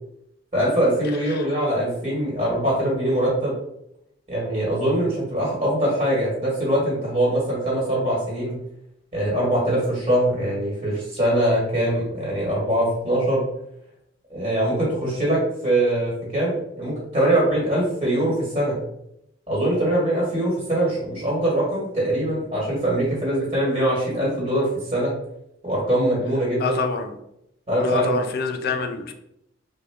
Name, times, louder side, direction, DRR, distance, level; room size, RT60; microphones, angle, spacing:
voice 1, 0.5-3.5 4.3-8.6 9.1-13.5 14.3-18.8 19.5-25.1 25.6-26.8 27.7-28.2, right 1 dB, 30° right, -6 dB, 1.4 m, -22 dB
voice 2, 26.6-27.1 27.8-29.1, left 5 dB, 55° left, 6 dB, 0.4 m, -26 dB
3.5 x 2.1 x 3.4 m, 0.80 s
head